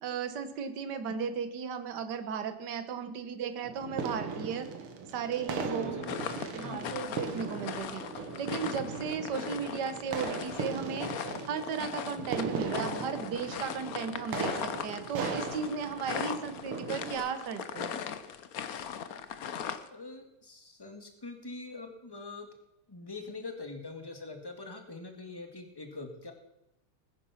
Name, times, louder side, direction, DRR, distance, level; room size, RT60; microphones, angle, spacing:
voice 1, 0.0-4.7 5.1-6.2 6.5-8.0 8.4-11.1 11.5-18.0, right 6 dB, 55° right, 10 dB, 1.7 m, -35 dB
sound 1, 3.6-17.1, right 5 dB, 80° right, 2.3 m, -38 dB
voice 2, 5.7-7.0 19.9-22.5 22.9-26.3, left 3 dB, 10° left, 5 dB, 1.8 m, -43 dB
sound 2, 6.0-19.9, left 8 dB, 55° left, 1.1 m, -39 dB
20.0 x 9.8 x 5.8 m, 0.89 s
omnidirectional pair, 2.4 m